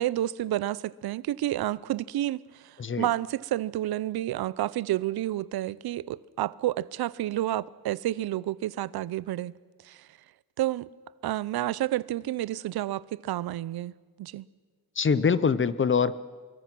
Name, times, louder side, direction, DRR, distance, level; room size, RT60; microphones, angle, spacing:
voice 1, 0.0-9.5 9.8-10.1 10.6-10.9 11.2-13.9 14.2-14.5, right 14 dB, 80° right, 0.6 m, -30 dB
voice 2, 15.0-16.2, left 5 dB, 30° left, 0.8 m, -24 dB
25.0 x 22.5 x 6.1 m
cardioid pair, 95°, 37 cm